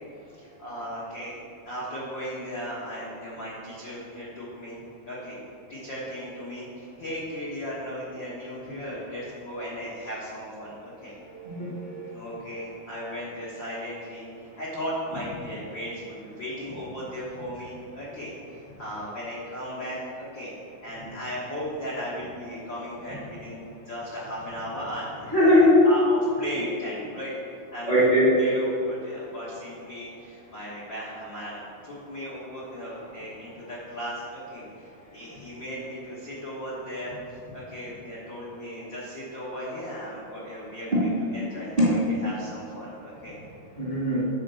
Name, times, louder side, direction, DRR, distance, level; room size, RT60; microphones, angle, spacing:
voice 1, 0.4-1.4 1.6-5.4 5.7-11.1 12.1-20.5 20.8-27.3 27.7-28.1 28.3-43.5, equal, 60° left, -7 dB, 1.2 m, -36 dB
voice 2, 11.3-12.1 25.3-25.8 27.8-28.4 40.9-41.0 41.8-41.9 43.8-44.2, left 1 dB, 30° right, -7 dB, 1.1 m, -20 dB
9.9 x 4.5 x 6.9 m, 2.5 s
omnidirectional pair, 4.6 m